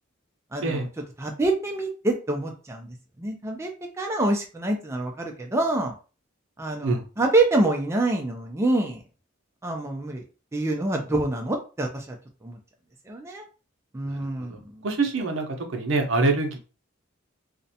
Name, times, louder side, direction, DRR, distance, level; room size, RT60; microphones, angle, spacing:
voice 1, 0.5-0.9 1.2-5.9 6.6-9.0 9.6-10.2 10.5-12.2 12.4-12.6 13.1-13.5 13.9-14.8, right 2 dB, 15° right, 1 dB, 0.3 m, -26 dB
voice 2, 14.1-16.6, right 3 dB, 65° right, 4 dB, 0.6 m, -26 dB
2.5 x 2.1 x 2.6 m, 0.34 s
head